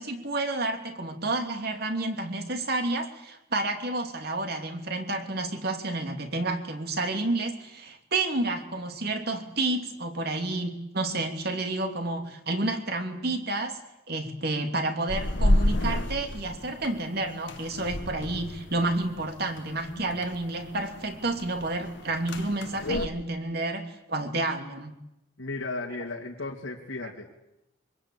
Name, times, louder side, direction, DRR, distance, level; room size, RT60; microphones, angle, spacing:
voice 1, 0.0-13.8 14.1-25.0 27.0-27.1, right 2 dB, 55° right, 6 dB, 3.0 m, -30 dB
sound 1, 15.1-23.1, left 1 dB, 65° left, 1.6 m, -30 dB
voice 2, 25.4-27.4, left 3 dB, 85° left, -2 dB, 3.0 m, -35 dB
26.0 x 24.5 x 8.7 m, 0.87 s
head